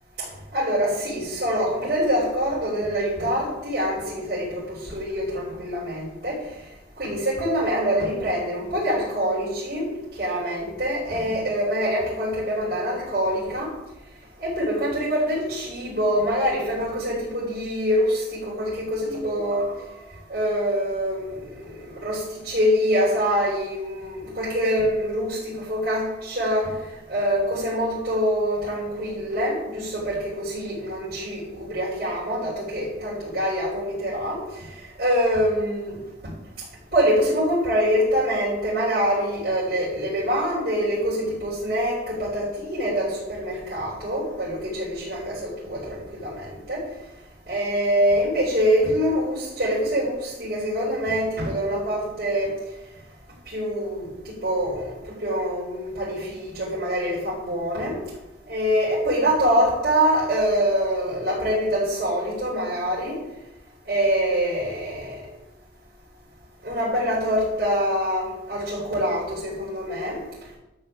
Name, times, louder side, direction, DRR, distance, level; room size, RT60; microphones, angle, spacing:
voice 1, 0.2-6.7 7.0-13.7 14.4-36.0 36.9-47.0 47.5-52.5 53.4-58.0 58.5-63.2 63.8-65.3 66.6-70.2, equal, 55° right, -8 dB, 4.2 m, -25 dB
11.5 x 5.6 x 7.2 m, 0.95 s
head